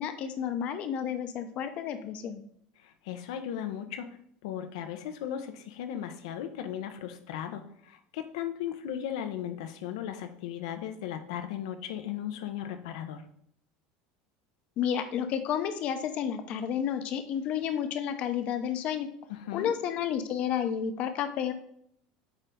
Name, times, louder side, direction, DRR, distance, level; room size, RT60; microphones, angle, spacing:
voice 1, 0.0-2.4 14.8-19.1 19.5-21.5, left 9 dB, 45° left, 8 dB, 0.8 m, -31 dB
voice 2, 2.8-4.1 4.4-13.2 19.3-19.7, left 10 dB, 85° left, 8 dB, 1.0 m, -36 dB
8.8 x 4.0 x 3.8 m, 0.69 s
supercardioid pair, 150°, 3 cm